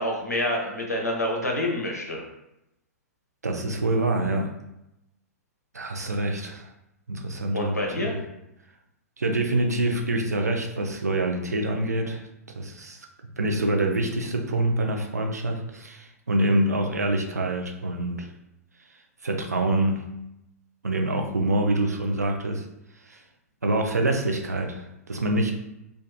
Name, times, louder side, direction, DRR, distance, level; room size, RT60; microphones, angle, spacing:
voice 1, 0.0-2.2 7.5-8.1, left 1 dB, 90° left, -1 dB, 0.7 m, -27 dB
voice 2, 3.4-4.5 5.7-6.7 7.1-8.2 9.2-12.2 12.5-13.0 13.4-18.3 19.2-20.0 20.8-22.6 23.1-23.2 23.6-25.5, right 1 dB, 80° right, 2 dB, 0.4 m, -26 dB
2.6 x 2.4 x 2.3 m, 0.87 s
figure-of-eight pair, 110°, 9 cm